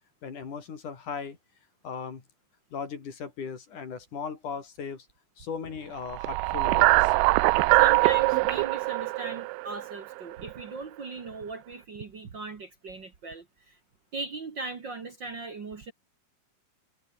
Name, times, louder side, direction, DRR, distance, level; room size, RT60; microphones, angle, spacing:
voice 1, 0.2-1.4 1.8-2.2 2.7-5.1 5.4-7.1, left 6 dB, 70° left, 5.1 m, -37 dB
sound 1, 6.1-10.4, right 22 dB, 85° right, 2.1 m, -22 dB
voice 2, 7.7-13.8 14.1-15.9, right 3 dB, 40° right, 2.1 m, -39 dB
omnidirectional pair, 3.8 m